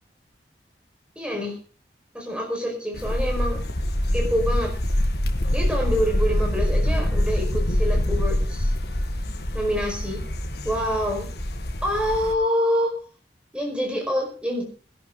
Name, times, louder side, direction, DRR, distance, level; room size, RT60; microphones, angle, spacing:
voice 1, 1.2-1.6 2.1-3.6 4.1-4.7 5.5-8.7 9.5-10.2 10.6-11.3 11.8-13.0 13.5-14.6, equal, 5° right, 0 dB, 5.1 m, -26 dB
sound 1, 2.9-12.3, left 1 dB, 65° left, 1.7 m, -25 dB
20.0 x 11.5 x 3.9 m, 0.36 s
head